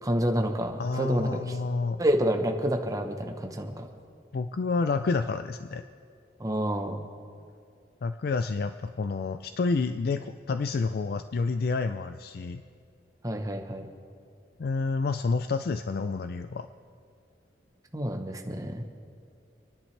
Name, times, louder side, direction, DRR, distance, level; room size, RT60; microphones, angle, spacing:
voice 1, 0.0-1.5 2.0-3.9 6.4-7.0 13.2-13.9 17.9-18.8, equal, 20° right, 4 dB, 1.0 m, -28 dB
voice 2, 0.8-2.0 4.3-5.8 8.0-12.6 14.6-16.7, left 4 dB, 55° left, 9 dB, 0.4 m, -29 dB
28.5 x 10.5 x 3.3 m, 2.3 s
head